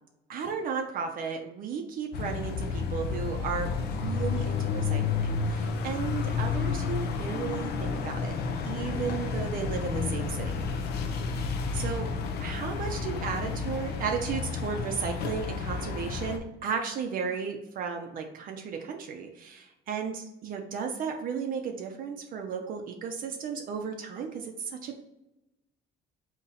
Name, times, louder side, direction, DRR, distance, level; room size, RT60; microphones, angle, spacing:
voice 1, 0.3-8.4 8.6-10.7 11.7-12.1 12.4-25.0, right 6 dB, 50° right, 3 dB, 0.6 m, -34 dB
sound 1, 2.1-16.4, left 5 dB, 65° left, 0.6 m, -31 dB
4.0 x 3.0 x 4.1 m, 0.92 s
cardioid pair, 135°, 18 cm